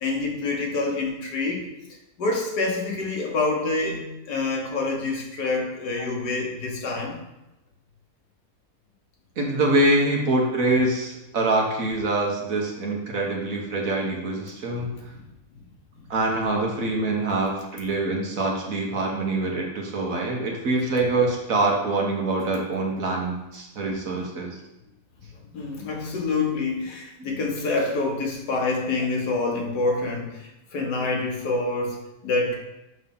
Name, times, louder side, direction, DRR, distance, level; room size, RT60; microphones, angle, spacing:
voice 1, 0.0-1.7 2.2-7.2 14.7-14.8 25.5-32.6, left 3 dB, 85° left, 0 dB, 1.8 m, -27 dB
voice 2, 9.4-14.9 16.1-24.6, right 2 dB, 60° right, 0 dB, 1.5 m, -24 dB
6.5 x 3.1 x 5.4 m, 0.94 s
omnidirectional pair, 1.7 m